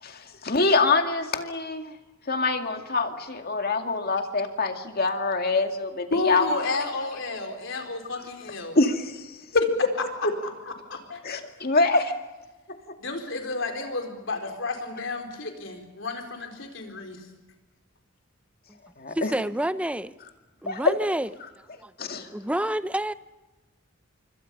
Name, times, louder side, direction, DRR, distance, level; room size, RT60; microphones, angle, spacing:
voice 1, 0.0-1.9 2.3-6.6 8.7-9.6 10.2-10.3 11.2-12.1 19.0-19.3 20.7-21.0 22.0-22.3, left 3 dB, 50° left, 2.3 m, -25 dB
voice 2, 6.1-8.8 10.9-11.4 13.0-17.3, left 3 dB, 65° left, 4.4 m, -31 dB
voice 3, 19.1-20.1 20.6-21.3 21.8-21.9 22.3-23.1, right 1 dB, 5° right, 0.7 m, -28 dB
26.5 x 24.5 x 5.5 m
head